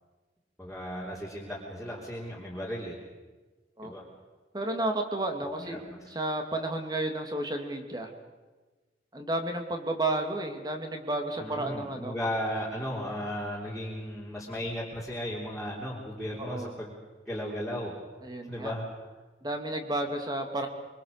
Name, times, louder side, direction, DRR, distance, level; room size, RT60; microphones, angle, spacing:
voice 1, 0.6-3.0 3.8-4.0 5.4-6.0 11.4-16.9 17.3-17.9 18.5-18.9, equal, ahead, -6 dB, 3.5 m, -35 dB
voice 2, 4.5-5.8 6.1-8.1 9.1-12.1 16.4-16.7 18.2-18.7 19.4-20.7, right 2 dB, 25° right, 4 dB, 2.5 m, -32 dB
25.0 x 24.0 x 6.7 m, 1.3 s
head